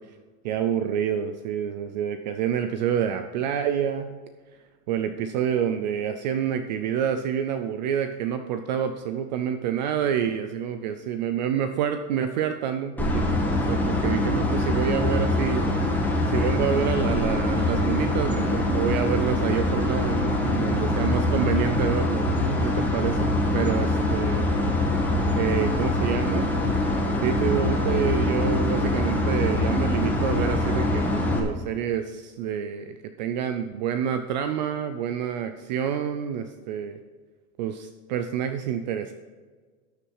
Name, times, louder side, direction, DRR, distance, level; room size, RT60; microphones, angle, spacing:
voice 1, 0.4-4.1 4.9-15.7 16.3-24.5 25.4-26.5 27.2-37.0 37.6-39.1, right 8 dB, 35° right, 8 dB, 0.4 m, -28 dB
sound 1, 13.0-31.4, left 1 dB, 5° left, 1.3 m, -24 dB
12.5 x 7.0 x 4.6 m, 1.4 s
supercardioid pair, 155°, 46 cm